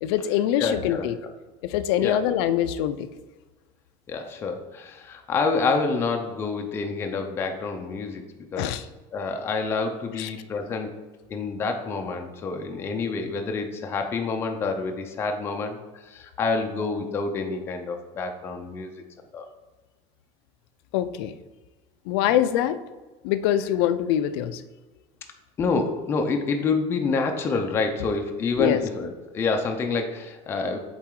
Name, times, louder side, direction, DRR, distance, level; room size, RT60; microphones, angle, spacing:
voice 1, 0.0-1.2 1.6-3.1 8.6-8.9 10.2-10.3 20.9-21.3 22.1-22.8 23.2-24.6 28.6-28.8, left 11 dB, 90° left, 12 dB, 0.4 m, -24 dB
voice 2, 0.6-1.1 2.0-2.2 4.1-8.2 8.5-8.8 9.1-10.9 11.3-15.8 16.1-18.9 19.3-19.4 25.6-30.8, left 4 dB, 20° left, 4 dB, 0.5 m, -27 dB
7.4 x 4.0 x 3.7 m, 1.2 s
cardioid pair, 175°, 13 cm